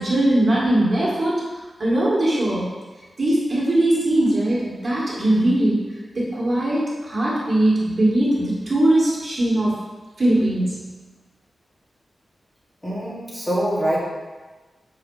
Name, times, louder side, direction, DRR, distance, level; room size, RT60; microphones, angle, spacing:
voice 1, 0.0-1.4 1.8-2.7 3.2-9.8 10.2-10.9, right 1 dB, 35° right, -6 dB, 1.8 m, -20 dB
voice 2, 12.8-14.0, right 1 dB, 15° left, -7 dB, 1.7 m, -24 dB
5.8 x 4.4 x 5.5 m, 1.2 s
wide cardioid pair, 175°, 0 cm